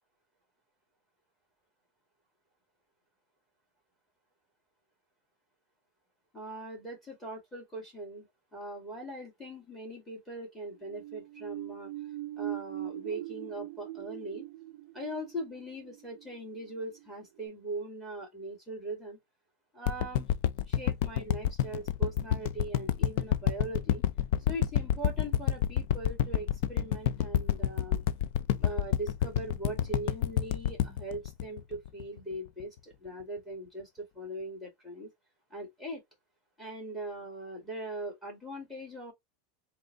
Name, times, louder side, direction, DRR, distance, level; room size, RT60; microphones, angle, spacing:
voice 1, 6.3-8.3 8.5-11.9 12.4-14.4 14.9-19.2 19.7-20.3 20.7-24.0 24.5-28.0 28.6-35.1 35.5-36.0 36.6-39.1, right 1 dB, 5° left, 2.1 m, -40 dB
sound 1, 10.7-17.1 17.4-17.5, right 15 dB, 70° right, 0.4 m, -42 dB
sound 2, 19.9-32.2 32.6-32.7, left 10 dB, 55° left, 0.4 m, -28 dB
3.8 x 2.7 x 3.3 m
supercardioid pair, 165°, 0 cm